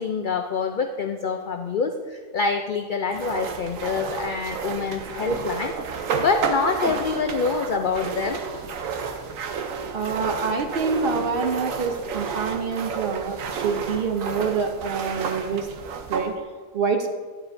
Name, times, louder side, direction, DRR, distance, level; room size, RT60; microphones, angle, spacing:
voice 1, 0.0-8.4, left 5 dB, 80° left, 6 dB, 0.4 m, -26 dB
sound 1, 3.1-16.3, right 6 dB, 80° right, 1.1 m, -31 dB
voice 2, 9.9-15.7 16.1-16.3 16.7-17.1, right 5 dB, 55° right, 6 dB, 0.6 m, -26 dB
9.8 x 9.7 x 2.6 m, 1.5 s
omnidirectional pair, 1.4 m